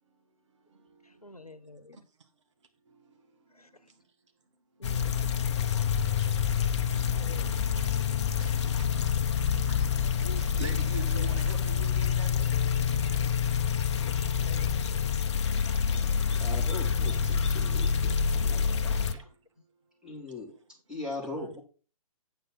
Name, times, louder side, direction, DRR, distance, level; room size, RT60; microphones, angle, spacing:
voice 1, 1.0-2.1 3.5-3.7 4.8-5.1 7.0-7.8 8.4-8.6 10.2-10.5 11.1-11.4 14.4-15.1 15.8-16.5 18.7-19.2 21.3-21.6, left 2 dB, 85° left, 1.1 m, -48 dB
sound 1, 4.8-19.1, left 7 dB, 50° left, 0.8 m, -27 dB
voice 2, 8.3-8.9 9.7-9.9 10.4-12.5 17.6-17.7, right 5 dB, 55° right, 1.7 m, -43 dB
voice 3, 16.4-19.2 20.0-20.5 20.9-21.6, left 3 dB, 5° right, 3.5 m, -40 dB
8.8 x 7.9 x 4.2 m
figure-of-eight pair, 125°, 19 cm